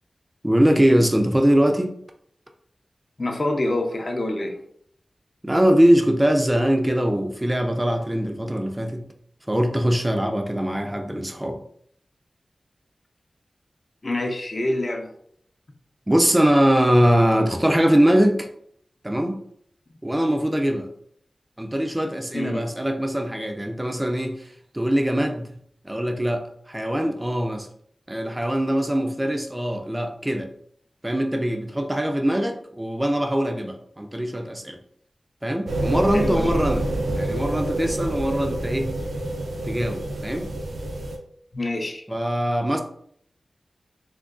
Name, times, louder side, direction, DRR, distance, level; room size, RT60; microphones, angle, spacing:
voice 1, 0.4-2.0 5.4-9.0 9.5-11.6 16.1-18.5 19.0-19.4 20.0-20.9 21.6-24.5 24.7-25.5 25.8-27.7 28.1-30.5 31.0-34.8 35.4-36.9 37.2-38.9 39.6-40.5 42.1-42.8, equal, 15° right, 4 dB, 0.3 m, -22 dB
voice 2, 3.2-4.6 14.0-15.1 22.3-22.7 36.1-36.5 41.5-42.0, left 1 dB, 45° left, 2 dB, 0.5 m, -26 dB
sound 1, 35.7-41.2, right 1 dB, 90° right, 0.4 m, -27 dB
3.6 x 2.2 x 2.4 m, 0.66 s
wide cardioid pair, 95°, 0 cm